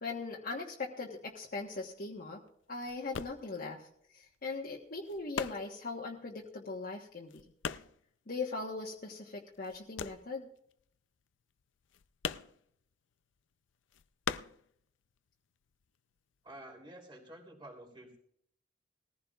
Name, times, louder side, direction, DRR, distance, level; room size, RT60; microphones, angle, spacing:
voice 1, 0.0-2.4 2.7-3.9 4.1-7.4 8.3-10.5, left 3 dB, 50° left, -2 dB, 1.3 m, -40 dB
sound 1, 1.1-9.2 9.4-15.3 15.6-16.6, left 6 dB, 90° left, 0.5 m, -42 dB
voice 2, 16.4-18.2, right 1 dB, 25° right, 1 dB, 3.3 m, -50 dB
20.0 x 15.0 x 2.4 m, 0.66 s
head